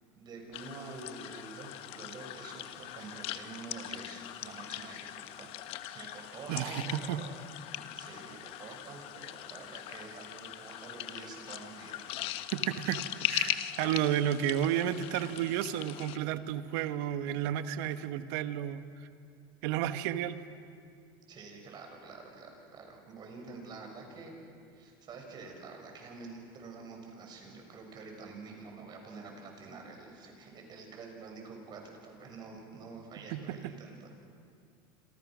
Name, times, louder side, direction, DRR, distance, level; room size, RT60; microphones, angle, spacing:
voice 1, 0.2-7.3 7.7-12.0 21.3-24.3 24.7-34.1, right 4 dB, 40° right, 2 dB, 6.5 m, -47 dB
sound 1, 0.5-16.2, left 13 dB, 55° left, 1.1 m, -40 dB
voice 2, 6.5-7.2 12.5-18.8 19.6-20.4 33.3-33.7, right 11 dB, 70° right, 11 dB, 1.3 m, -32 dB
27.5 x 27.0 x 6.3 m, 2.3 s
supercardioid pair, 120°, 11 cm